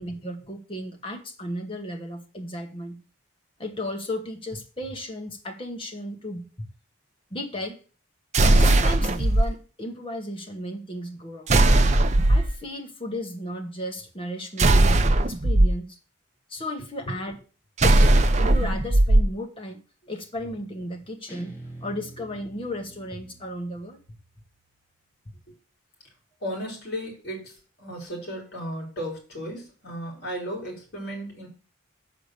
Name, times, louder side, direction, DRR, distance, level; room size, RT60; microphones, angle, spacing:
voice 1, 0.0-3.0 3.6-6.7 7.3-7.8 8.4-11.5 12.3-16.0 16.5-17.4 17.8-19.8 20.1-24.0, left 1 dB, 25° left, 3 dB, 1.3 m, -35 dB
sound 1, 8.3-9.5 11.5-12.5 14.6-15.7 17.8-19.3, right 2 dB, 35° right, 0.5 m, -18 dB
Guitar, 21.3-24.5, right 1 dB, 10° left, 2.0 m, -46 dB
voice 2, 26.4-31.5, equal, 50° left, -2 dB, 3.6 m, -35 dB
6.6 x 5.0 x 6.7 m, 0.36 s
head